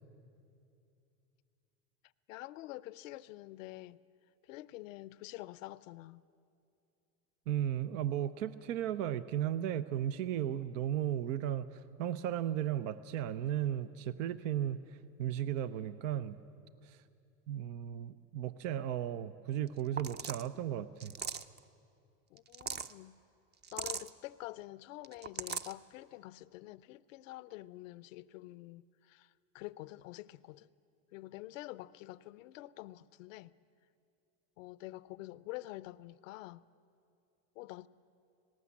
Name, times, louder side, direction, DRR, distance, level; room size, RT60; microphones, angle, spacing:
voice 1, 2.3-4.0 4.4-6.2 22.3-23.2 23.7-30.7 31.1-33.5 34.6-36.6 37.6-37.9, left 17 dB, 80° left, 0.6 m, -47 dB
voice 2, 7.5-14.8 15.2-16.4 16.8-17.0 17.5-21.1, right 11 dB, 75° right, 0.7 m, -35 dB
sound 1, 19.7-19.8 20.0-20.5 21.0-21.6 22.4-22.9 23.6-24.1 25.0-25.7, right 6 dB, 25° right, 0.6 m, -39 dB
19.0 x 18.0 x 8.5 m
hypercardioid pair, 85°, 38 cm